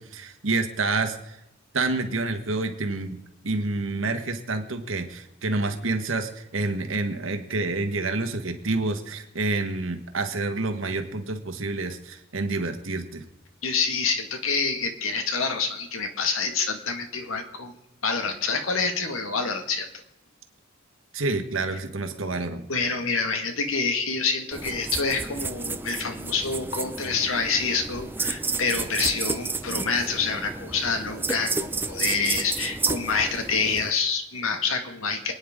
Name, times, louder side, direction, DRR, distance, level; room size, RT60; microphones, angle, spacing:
voice 1, 0.0-1.4 1.7-3.2 3.4-13.3 21.1-22.7, right 3 dB, 70° right, 6 dB, 1.6 m, -28 dB
voice 2, 13.6-17.7 18.0-19.9 22.7-35.3, left 4 dB, 75° left, 6 dB, 2.0 m, -27 dB
sound 1, 24.5-33.9, right 3 dB, 10° right, 0.6 m, -31 dB
27.5 x 9.8 x 3.7 m, 0.88 s
head